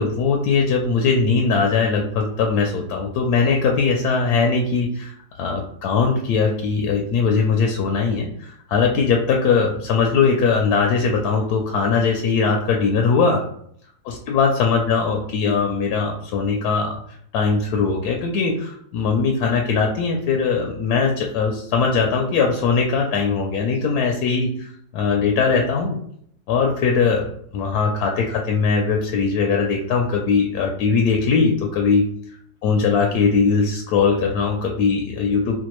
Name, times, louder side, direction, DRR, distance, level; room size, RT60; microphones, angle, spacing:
voice 1, 0.0-13.4 14.1-17.0 17.3-26.0 26.5-27.3 27.5-32.0 32.6-35.6, left 5 dB, 75° left, 1 dB, 1.0 m, -20 dB
4.3 x 2.4 x 3.0 m, 0.66 s
omnidirectional pair, 1.8 m